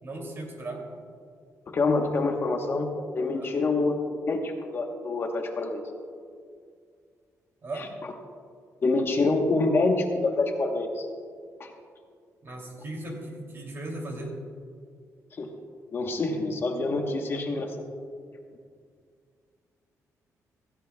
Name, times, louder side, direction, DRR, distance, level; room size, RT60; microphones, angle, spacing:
voice 1, 0.0-0.8 3.3-3.5 7.6-7.9 12.4-14.3, right 2 dB, 40° right, 0 dB, 2.7 m, -37 dB
voice 2, 1.7-2.9 3.1-4.0 4.3-5.8 7.8-7.9 8.8-11.1 11.6-11.7 15.3-15.5 15.9-17.7, left 3 dB, 40° left, 3 dB, 1.1 m, -26 dB
16.0 x 15.5 x 2.3 m, 2.1 s
cardioid pair, 135°, 6 cm